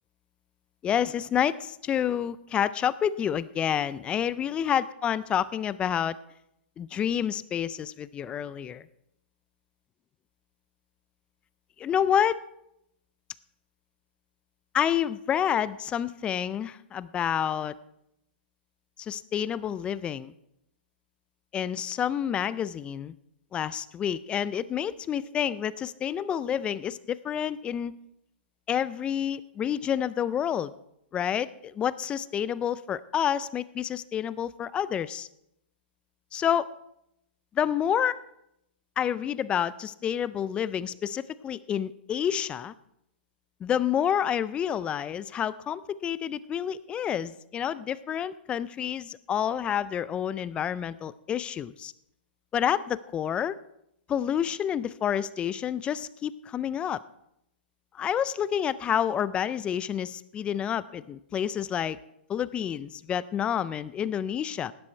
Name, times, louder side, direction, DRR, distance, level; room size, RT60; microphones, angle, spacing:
voice 1, 0.8-6.2 6.8-8.8 11.8-12.4 14.7-17.7 19.0-20.3 21.5-23.1 23.5-27.9 28.7-30.7 31.1-35.3 36.3-36.7 37.6-38.2 39.0-42.7 43.6-51.9 52.5-53.6 54.1-57.0 58.0-62.0 62.3-64.7, left 9 dB, 15° left, 18 dB, 0.4 m, -29 dB
16.5 x 11.0 x 4.4 m, 0.80 s
hypercardioid pair, 145°, 6 cm